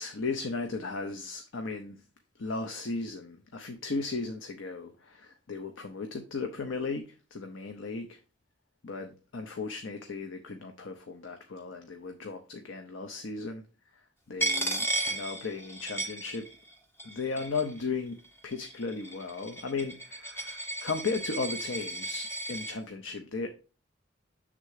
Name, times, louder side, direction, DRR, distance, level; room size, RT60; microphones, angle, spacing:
voice 1, 0.0-2.0 2.4-8.2 8.8-13.6 14.0-16.5 17.0-18.2 18.4-23.5, left 4 dB, 70° left, 0.7 m, -36 dB
Coin (dropping), 14.4-16.7 17.0-17.8 18.5-22.7, right 2 dB, 10° left, 1.0 m, -34 dB
6.6 x 3.7 x 4.8 m
head